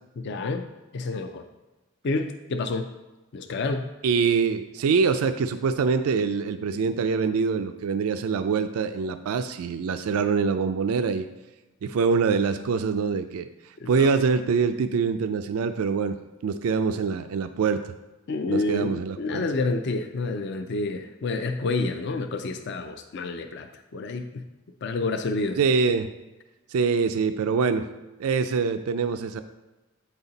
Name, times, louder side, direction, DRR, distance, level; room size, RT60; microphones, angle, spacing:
voice 1, 0.2-1.5 2.0-2.9 3.3-3.9 13.8-14.2 18.3-24.4 24.8-25.6, left 3 dB, 50° left, 7 dB, 0.4 m, -29 dB
voice 2, 4.0-11.3 11.8-13.5 13.9-17.8 18.5-19.5 25.6-26.1 26.7-27.9 28.2-29.4, right 5 dB, 90° right, 9 dB, 0.4 m, -24 dB
8.6 x 4.1 x 4.0 m, 1.1 s
head